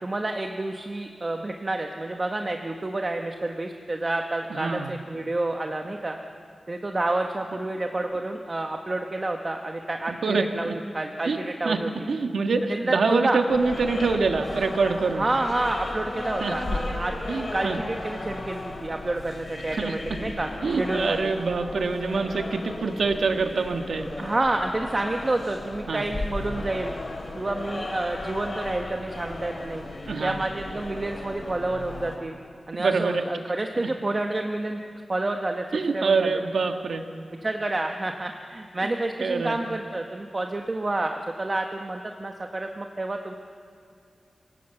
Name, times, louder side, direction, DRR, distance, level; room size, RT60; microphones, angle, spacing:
voice 1, 0.0-6.2 6.7-11.9 12.7-13.4 15.1-17.1 17.5-21.3 24.2-27.0 27.3-29.8 30.2-32.4 32.7-34.8 35.1-36.4 37.4-43.3, right 2 dB, 30° right, 3 dB, 1.2 m, -29 dB
voice 2, 4.5-4.9 10.1-10.7 11.2-11.4 11.6-11.8 12.1-15.3 16.4-16.8 17.3-17.8 19.7-19.9 20.6-24.1 25.9-26.0 30.1-30.4 32.8-33.2 33.8-33.9 35.7-37.0 38.8-38.9 39.2-39.6, right 4 dB, 80° right, 5 dB, 1.5 m, -25 dB
sound 1, 13.5-32.2, left 2 dB, 40° left, 3.1 m, -35 dB
26.5 x 17.5 x 8.0 m, 2.5 s
wide cardioid pair, 100°, 0 cm